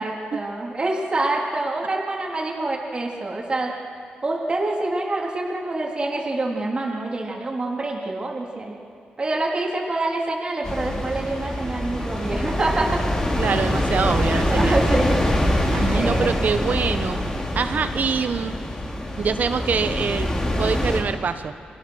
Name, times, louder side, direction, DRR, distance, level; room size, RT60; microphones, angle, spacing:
voice 1, 0.0-3.7 4.2-8.8 9.2-13.0 13.5-13.6 14.4-15.5 16.0-16.4, right 2 dB, 30° right, -2 dB, 3.4 m, -26 dB
sound 1, 10.6-21.0, left 1 dB, 25° left, 4.0 m, -24 dB
voice 2, 13.4-14.8 15.7-17.2 17.5-18.6 19.2-20.3 20.6-21.5, right 5 dB, 55° right, 10 dB, 1.2 m, -24 dB
28.5 x 22.5 x 6.4 m, 2.3 s
wide cardioid pair, 115°, 3 cm